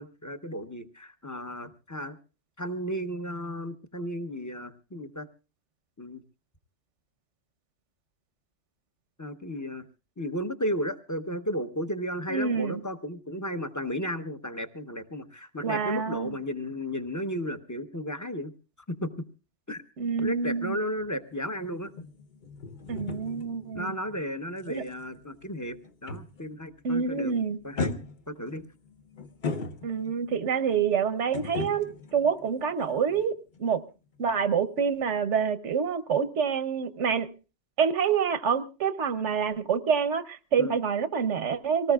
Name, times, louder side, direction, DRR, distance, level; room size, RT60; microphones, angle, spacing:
voice 1, 0.0-2.2 2.6-5.3 6.0-6.2 9.2-9.9 10.2-18.5 18.9-19.3 19.7-19.8 20.2-21.9 23.7-27.3 27.6-27.9 28.3-28.6 40.6-40.7, equal, 15° left, 9 dB, 0.8 m, -34 dB
voice 2, 12.3-12.8 15.6-16.3 20.0-20.8 22.9-24.0 24.7-24.8 26.8-27.6 29.8-33.3 33.6-33.8 34.2-37.3 37.8-41.9, right 6 dB, 80° right, 14 dB, 1.2 m, -27 dB
sound 1, 20.9-26.6 26.9-27.3 27.8-30.3 31.3-33.3 33.5-33.7, left 3 dB, 45° left, 0.9 m, -38 dB
24.5 x 18.5 x 2.3 m, 0.32 s
omnidirectional pair, 1.2 m